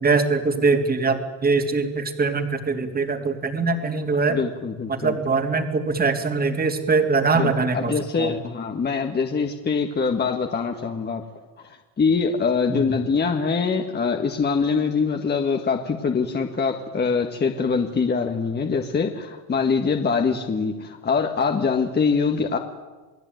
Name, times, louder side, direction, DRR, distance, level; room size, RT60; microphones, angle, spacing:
voice 1, 0.0-4.4 4.9-8.4 12.7-12.8, right 4 dB, 20° right, 6 dB, 3.0 m, -22 dB
voice 2, 4.3-5.2 7.3-11.2 11.6-22.6, left 5 dB, 20° left, 4 dB, 1.9 m, -24 dB
29.0 x 19.5 x 9.4 m, 1.3 s
supercardioid pair, 130°, 50 cm